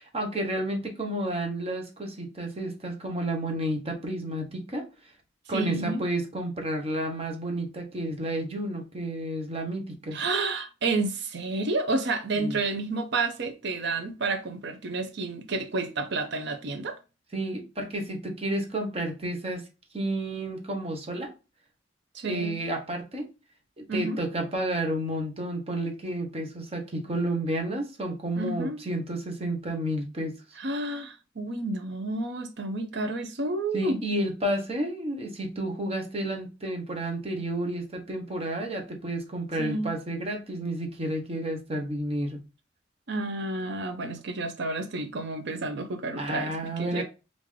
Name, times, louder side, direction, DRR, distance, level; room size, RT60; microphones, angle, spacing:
voice 1, 0.1-4.9 5.5-10.2 12.4-12.6 17.3-19.7 19.9-21.3 22.2-23.3 23.8-30.4 33.7-42.4 46.2-47.0, right 1 dB, 30° right, 0.9 m, -31 dB
voice 2, 5.5-6.0 10.1-17.0 22.1-22.6 23.9-24.2 28.4-28.8 30.6-34.0 39.6-39.9 43.1-47.0, right 3 dB, 60° right, 0.6 m, -30 dB
3.6 x 2.6 x 3.1 m
head